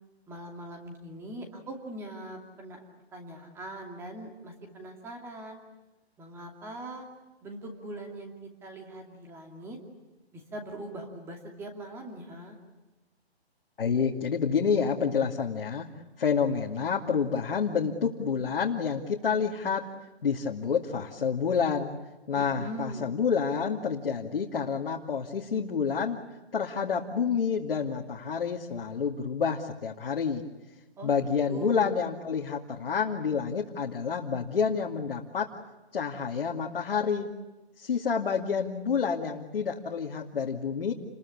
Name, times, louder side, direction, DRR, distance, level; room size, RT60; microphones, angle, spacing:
voice 1, 0.3-2.8 3.1-5.6 6.2-7.1 7.4-8.3 8.6-9.8 10.3-12.6 22.3-23.1 31.0-31.9, right 1 dB, 5° right, 3 dB, 2.6 m, -41 dB
voice 2, 13.8-15.9 16.2-19.8 20.2-21.9 22.3-26.2 26.5-30.4 31.0-35.5 35.9-37.3 37.8-40.9, left 6 dB, 60° left, -1 dB, 2.5 m, -28 dB
30.0 x 21.5 x 8.6 m, 1.1 s
hypercardioid pair, 165°, 32 cm